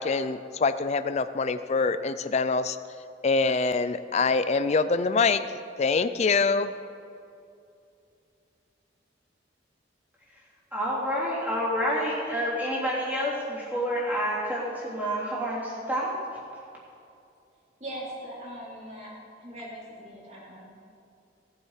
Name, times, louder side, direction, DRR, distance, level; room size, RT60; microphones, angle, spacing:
voice 1, 0.0-2.8 3.2-5.4 5.8-6.7, left 4 dB, 35° left, 12 dB, 0.4 m, -25 dB
voice 2, 10.7-16.2, equal, 10° right, -7 dB, 3.2 m, -28 dB
voice 3, 17.8-19.1 19.4-20.7, right 1 dB, 35° right, -6 dB, 3.6 m, -40 dB
17.5 x 7.7 x 4.9 m, 2.5 s
head